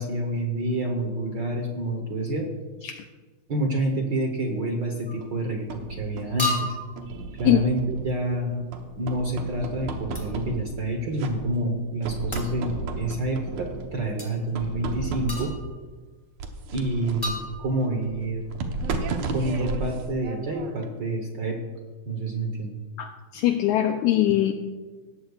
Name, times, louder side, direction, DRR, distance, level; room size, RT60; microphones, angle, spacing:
voice 1, 0.0-2.5 2.8-2.9 3.5-6.8 7.3-8.6 9.0-15.5 16.7-18.5 19.3-21.6 22.1-22.7, right 1 dB, 80° right, 2 dB, 1.0 m, -28 dB
sound 1, 5.1-5.3 6.4-7.0 10.1-10.4 12.3-12.6 14.2-14.3 15.3-15.8 17.2-18.0, left 2 dB, 10° left, 1.8 m, -32 dB
sound 2, 5.2-6.4 7.0-8.3 8.7-10.9 11.2-11.8 12.0-14.0 14.5-15.6 16.4-20.9, right 3 dB, 65° right, 2.0 m, -34 dB
voice 2, 23.0-24.5, left 13 dB, 85° left, 6 dB, 1.7 m, -22 dB
18.5 x 14.5 x 2.4 m, 1.4 s
omnidirectional pair, 3.9 m